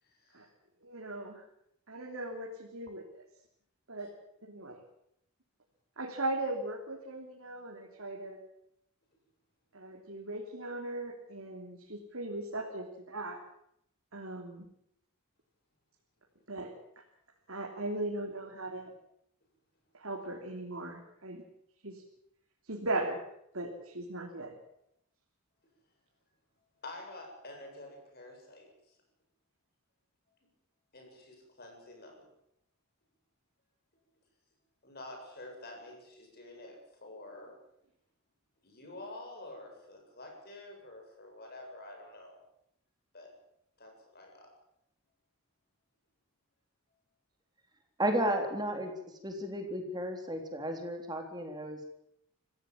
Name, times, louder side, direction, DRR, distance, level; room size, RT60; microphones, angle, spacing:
voice 1, 0.0-0.5 4.0-4.1 26.8-29.0 30.9-32.3 34.8-37.6 38.6-42.4 43.1-43.3 43.8-44.5, left 2 dB, 45° left, 2 dB, 7.7 m, -48 dB
voice 2, 0.8-1.4 1.9-3.0 3.9-4.1 4.4-4.8 6.0-8.4 9.7-13.4 14.1-14.7 16.5-16.7 17.5-18.9 19.9-21.4 21.8-22.0 22.7-23.2 23.5-24.5, right 2 dB, 70° right, -1 dB, 3.4 m, -38 dB
voice 3, 48.0-48.9 49.2-51.9, right 1 dB, 20° right, 4 dB, 3.6 m, -33 dB
25.5 x 16.0 x 7.5 m, 0.76 s
head